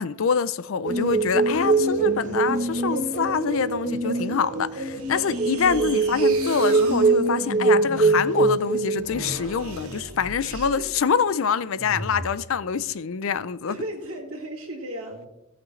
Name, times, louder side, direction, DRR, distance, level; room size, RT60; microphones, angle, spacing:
voice 1, 0.0-13.7, left 6 dB, 65° left, 0.4 m, -25 dB
sound 1, 0.8-9.1 10.4-10.5, right 3 dB, 35° right, 1.0 m, -23 dB
sound 2, 4.9-10.9 11.8-12.4, right 1 dB, 80° right, 1.8 m, -37 dB
voice 2, 10.4-10.9 13.7-15.3, right 1 dB, 60° right, 1.9 m, -35 dB
17.0 x 5.9 x 3.2 m
head